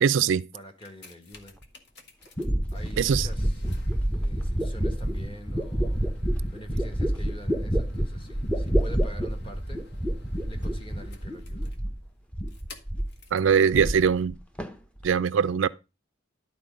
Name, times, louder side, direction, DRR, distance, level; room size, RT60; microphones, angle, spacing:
voice 1, 0.0-0.4 3.0-3.3 13.3-14.4 15.0-15.7, right 7 dB, 70° right, 0.4 m, -22 dB
voice 2, 0.5-1.6 2.7-3.6 4.2-6.0 6.5-9.8 10.5-11.7, equal, 30° left, 1.6 m, -46 dB
sound 1, 0.6-13.6 14.3-14.4, left 1 dB, 60° left, 1.4 m, -51 dB
sound 2, 1.6-1.7 2.4-12.1 12.3-13.2 13.5-14.3 14.6-15.1, equal, 5° left, 0.7 m, -28 dB
11.5 x 4.2 x 5.1 m
head